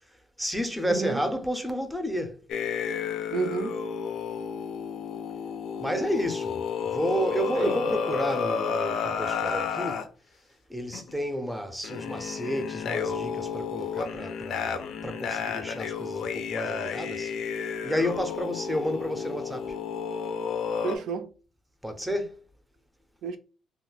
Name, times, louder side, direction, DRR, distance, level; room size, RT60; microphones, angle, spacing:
voice 1, 0.4-2.4 5.8-10.1 10.7-19.8 21.8-22.4, equal, ahead, 0.5 m, -31 dB
voice 2, 0.9-1.3 3.3-3.8 7.6-7.7 20.8-21.3 23.2-23.4, right 5 dB, 75° right, 0.4 m, -30 dB
sound 1, 2.5-10.1 10.9-11.2 11.8-21.0, left 6 dB, 70° left, 0.5 m, -31 dB
2.3 x 2.1 x 3.8 m
cardioid pair, 130°, 0 cm